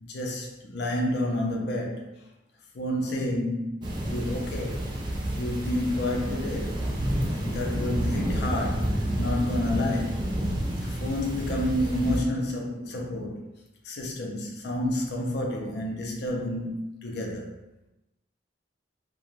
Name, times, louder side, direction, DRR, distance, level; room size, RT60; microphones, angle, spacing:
voice 1, 0.0-2.1 2.7-4.9 5.3-6.8 7.4-10.2 10.8-13.4 13.8-17.5, left 1 dB, 60° left, 0.5 m, -30 dB
sound 1, 3.8-12.2, right 1 dB, 25° right, 0.4 m, -29 dB
2.4 x 2.1 x 3.0 m
head